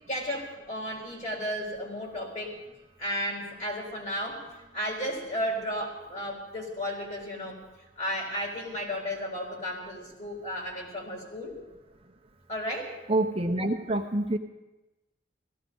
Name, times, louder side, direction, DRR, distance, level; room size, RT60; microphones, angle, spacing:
voice 1, 0.1-2.6 3.0-7.6 8.0-11.6 12.5-13.0, equal, 40° left, -1 dB, 3.9 m, -34 dB
voice 2, 13.1-14.4, right 1 dB, 30° right, 2 dB, 0.8 m, -26 dB
16.5 x 14.5 x 5.4 m, 1.0 s
head